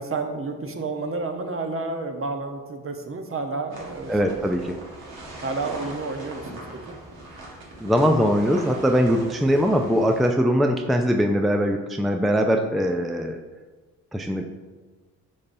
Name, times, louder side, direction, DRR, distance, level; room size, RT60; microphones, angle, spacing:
voice 1, 0.0-4.4 5.4-7.0 9.2-9.3, right 3 dB, 35° right, 5 dB, 0.9 m, -30 dB
sound 1, 3.7-10.3, right 2 dB, 70° right, 1.5 m, -41 dB
voice 2, 4.1-4.7 7.8-13.4 14.1-14.6, equal, ahead, 4 dB, 0.5 m, -21 dB
6.6 x 5.3 x 2.7 m, 1.3 s
hypercardioid pair, 45°, 37 cm